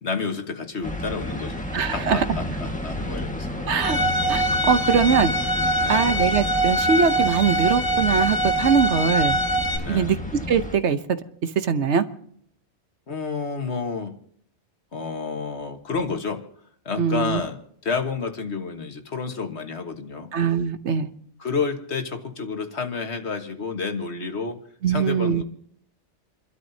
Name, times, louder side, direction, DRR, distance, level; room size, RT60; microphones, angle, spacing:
voice 1, 0.0-4.1 5.8-6.0 9.8-10.1 13.1-14.1 14.9-16.4 16.9-20.3 21.4-24.6 24.9-25.4, left 4 dB, 65° left, 6 dB, 1.8 m, -30 dB
sound 1, 0.8-10.8, left 1 dB, 5° left, 1.5 m, -31 dB
voice 2, 1.7-2.2 3.7-4.0 4.3-5.3 5.9-9.4 9.9-11.2 11.5-12.1 17.0-17.4 20.3-21.1 24.8-25.4, right 6 dB, 75° right, 10 dB, 1.2 m, -22 dB
Bowed string instrument, 3.8-9.8, right 1 dB, 45° left, 1.7 m, -23 dB
29.0 x 12.5 x 2.8 m, 0.64 s
omnidirectional pair, 1.2 m